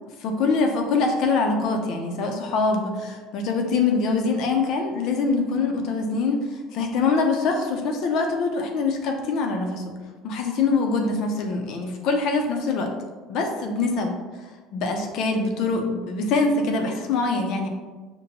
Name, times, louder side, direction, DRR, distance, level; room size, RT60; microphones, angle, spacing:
voice 1, 0.2-9.9 10.2-12.9 13.3-14.2 14.7-17.7, left 4 dB, 60° left, 3 dB, 0.6 m, -24 dB
5.2 x 2.2 x 2.8 m, 1.3 s
cardioid pair, 130°, 0 cm